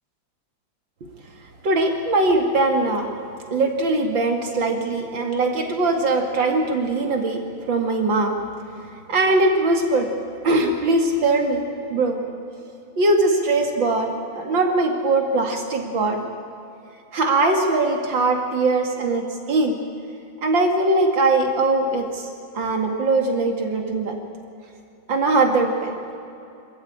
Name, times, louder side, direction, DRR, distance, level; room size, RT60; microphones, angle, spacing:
voice 1, 1.6-3.1 3.5-8.3 9.1-10.1 10.4-12.2 13.0-16.3 17.1-19.8 20.4-22.3 22.5-24.2 25.1-25.9, right 2 dB, 80° right, 3 dB, 3.1 m, -21 dB
26.0 x 14.0 x 8.9 m, 2.7 s
omnidirectional pair, 2.0 m